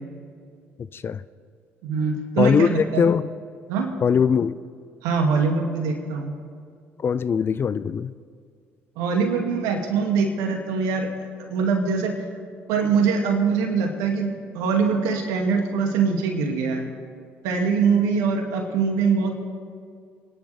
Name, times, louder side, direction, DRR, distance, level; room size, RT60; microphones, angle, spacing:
voice 1, 1.8-3.1 3.7-3.9 5.0-6.3 9.0-11.1 11.4-12.1 12.7-16.9 17.4-19.3, right 5 dB, 75° right, 2 dB, 2.3 m, -23 dB
voice 2, 2.4-3.2 4.0-4.5 7.0-8.1, left 6 dB, 40° left, 16 dB, 0.5 m, -21 dB
28.0 x 10.5 x 3.4 m, 2.2 s
hypercardioid pair, 60°, 6 cm